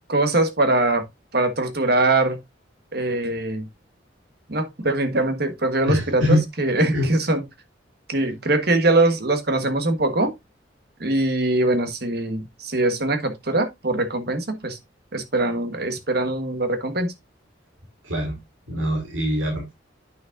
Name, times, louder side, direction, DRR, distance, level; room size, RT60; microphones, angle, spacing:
voice 1, 0.1-1.0 1.3-2.4 2.9-3.7 4.5-7.4 8.1-10.3 11.0-14.8 15.1-17.1, right 2 dB, 55° right, 1.4 m, -22 dB
voice 2, 5.9-6.4 6.9-7.1 18.0-18.4 18.7-19.7, left 1 dB, 85° right, 3.0 m, -23 dB
9.2 x 6.1 x 2.6 m
head